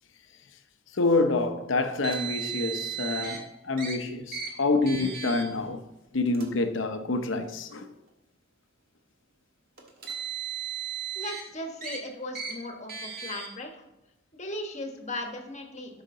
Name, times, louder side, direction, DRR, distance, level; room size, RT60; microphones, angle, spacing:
voice 1, 0.9-5.8 6.1-7.9, left 3 dB, 75° left, 0.8 m, -27 dB
Car, 2.0-3.4 3.8-3.9 4.3-4.5 4.9-5.4 6.3-6.4 7.4-7.5 9.8-11.4 11.8-12.0 12.3-12.5 12.9-13.5, right 8 dB, 50° right, 1.7 m, -35 dB
voice 2, 11.1-13.8 14.3-16.0, left 1 dB, 35° left, 1.3 m, -37 dB
12.0 x 5.9 x 3.8 m
head